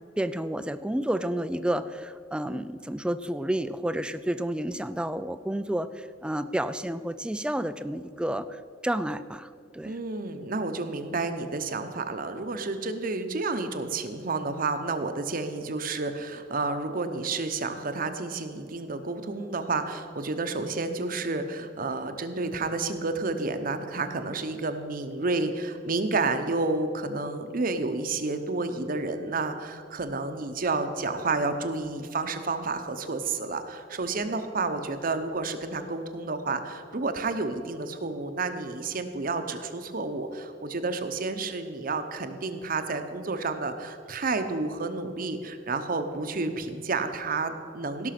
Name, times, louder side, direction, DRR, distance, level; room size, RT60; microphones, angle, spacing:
voice 1, 0.2-10.0, right 1 dB, 5° right, 13 dB, 0.3 m, -30 dB
voice 2, 9.8-48.1, right 3 dB, 50° right, 8 dB, 0.8 m, -30 dB
16.5 x 6.1 x 5.9 m, 2.3 s
head